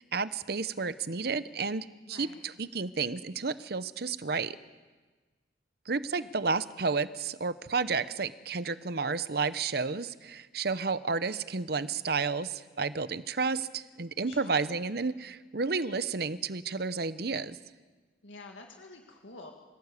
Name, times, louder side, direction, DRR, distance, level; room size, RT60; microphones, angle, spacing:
voice 1, 0.0-4.6 5.9-17.6, right 4 dB, 55° right, 14 dB, 0.8 m, -31 dB
voice 2, 2.1-2.4 6.2-6.3 14.3-14.6 18.2-19.5, left 2 dB, 85° left, 2 dB, 2.1 m, -48 dB
26.0 x 17.0 x 8.3 m, 1.3 s
head